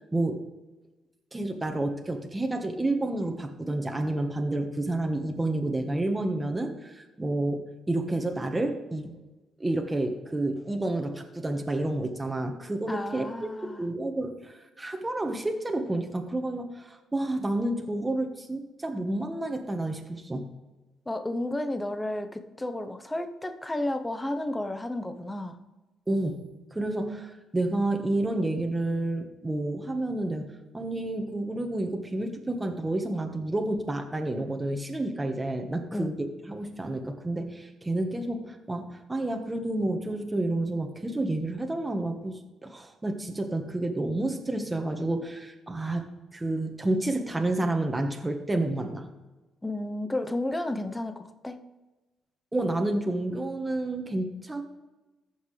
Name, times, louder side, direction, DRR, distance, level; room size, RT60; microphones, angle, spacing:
voice 1, 0.1-0.4 1.3-9.1 9.6-13.5 13.8-20.5 26.1-26.4 26.7-30.5 30.7-49.1 52.5-54.6, right 2 dB, 15° right, 3 dB, 1.3 m, -30 dB
voice 2, 12.9-13.9 21.1-25.6 35.9-36.1 49.6-51.6, left 1 dB, 15° left, 7 dB, 0.8 m, -32 dB
14.5 x 5.9 x 3.3 m, 1.1 s
cardioid pair, 90°, 0 cm